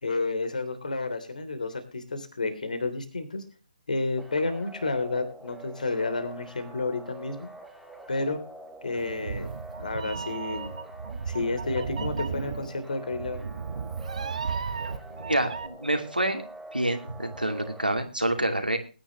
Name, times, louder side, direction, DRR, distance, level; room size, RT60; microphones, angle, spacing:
voice 1, 0.0-3.4 3.9-7.5 8.1-8.4 8.8-9.5 9.8-10.7 11.3-13.4, left 3 dB, 60° left, 9 dB, 3.4 m, -30 dB
sound 1, 4.2-18.0, right 2 dB, ahead, 1.1 m, -46 dB
Meow, 9.0-15.7, right 5 dB, 50° right, 1.2 m, -35 dB
voice 2, 15.2-16.4 16.7-18.8, right 1 dB, 90° right, 5 dB, 2.6 m, -27 dB
21.0 x 10.0 x 3.2 m, 0.34 s
figure-of-eight pair, 140°, 5 cm